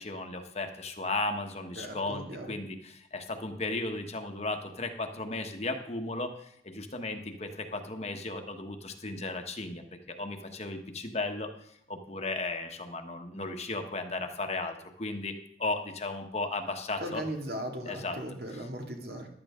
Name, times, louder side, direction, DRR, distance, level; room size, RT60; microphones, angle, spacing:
voice 1, 0.0-17.2 17.8-18.2 18.5-18.7, left 2 dB, 35° left, 5 dB, 1.2 m, -35 dB
voice 2, 1.8-2.5 17.0-19.3, right 1 dB, 60° right, 2 dB, 2.3 m, -38 dB
14.0 x 12.0 x 3.7 m, 0.71 s
head